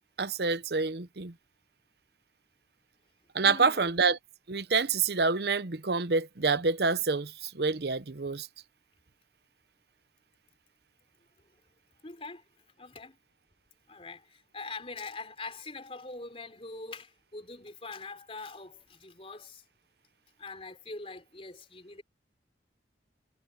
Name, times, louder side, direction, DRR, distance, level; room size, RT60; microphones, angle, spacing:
voice 1, 0.2-1.3 3.3-4.2 4.5-8.5, right 4 dB, 60° right, 0.8 m, -27 dB
voice 2, 3.4-3.9 12.0-12.4 12.8-13.2 13.9-19.6 20.4-22.0, left 3 dB, 35° left, 4.0 m, -43 dB
head